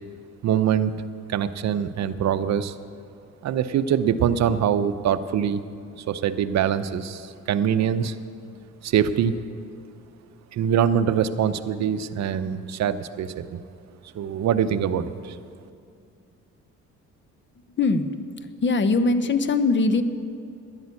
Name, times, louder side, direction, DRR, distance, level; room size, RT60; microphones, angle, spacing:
voice 1, 0.4-1.0 1.3-2.7 3.4-5.6 6.1-8.1 8.8-9.3 10.5-13.6 14.1-15.3, right 8 dB, 60° right, 12 dB, 0.7 m, -23 dB
voice 2, 17.8-18.1 18.6-20.0, left 3 dB, 40° left, 11 dB, 0.9 m, -21 dB
11.0 x 10.5 x 8.4 m, 2.4 s
cardioid pair, 90°, 30 cm